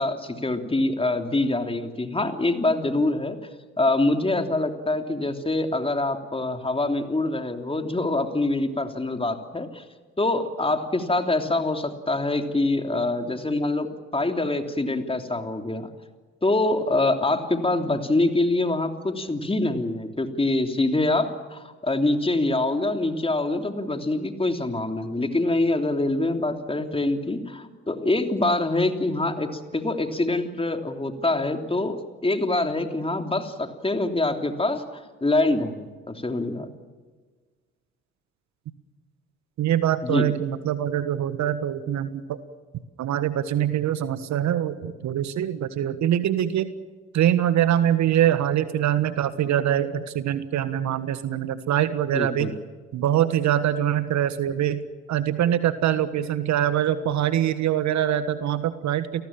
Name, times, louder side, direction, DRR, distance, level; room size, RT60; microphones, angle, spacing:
voice 1, 0.0-3.4 3.8-9.8 10.2-13.9 14.1-15.9 16.4-32.0 32.2-36.7 40.0-40.3 52.1-52.5, left 2 dB, 15° left, 6 dB, 3.2 m, -25 dB
voice 2, 39.6-42.4 43.0-46.7 47.1-52.5 52.9-54.8 55.1-59.3, right 11 dB, 55° right, 13 dB, 1.5 m, -24 dB
29.5 x 19.0 x 7.4 m, 1.5 s
hypercardioid pair, 50°, 33 cm